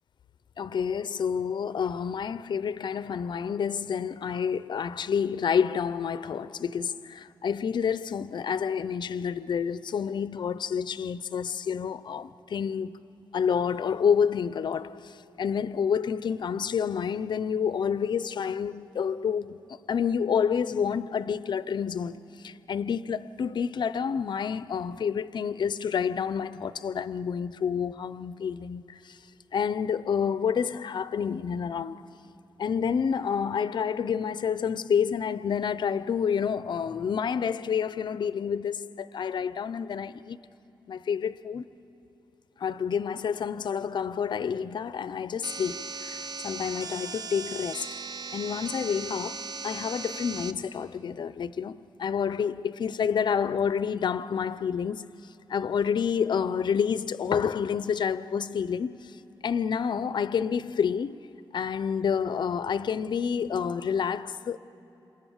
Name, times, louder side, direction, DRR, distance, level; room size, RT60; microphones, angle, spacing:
voice 1, 0.6-13.0 13.3-22.2 22.4-29.2 29.5-32.0 32.6-40.4 40.9-41.7 42.6-47.9 48.3-59.2 59.4-61.2 61.5-64.6, left 7 dB, 65° left, 0.6 m, -29 dB
sound 1, 45.4-50.5, right 4 dB, 50° right, 0.8 m, -38 dB
28.0 x 27.0 x 7.2 m
wide cardioid pair, 120°, 8 cm